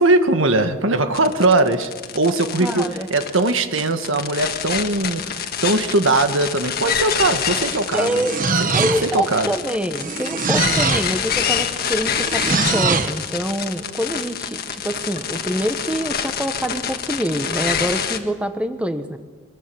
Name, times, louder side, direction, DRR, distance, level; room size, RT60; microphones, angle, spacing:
voice 1, 0.0-8.2 8.6-9.5, right 2 dB, 80° right, 8 dB, 1.6 m, -20 dB
sound 1, 1.1-18.2, left 7 dB, 50° left, 1.6 m, -26 dB
voice 2, 2.6-3.1 7.9-8.4 8.7-19.2, equal, 5° right, 7 dB, 1.2 m, -25 dB
sound 2, 7.7-9.3 10.0-11.2 12.2-13.2, right 4 dB, 40° right, 1.1 m, -22 dB
23.0 x 22.5 x 7.1 m, 1.4 s
head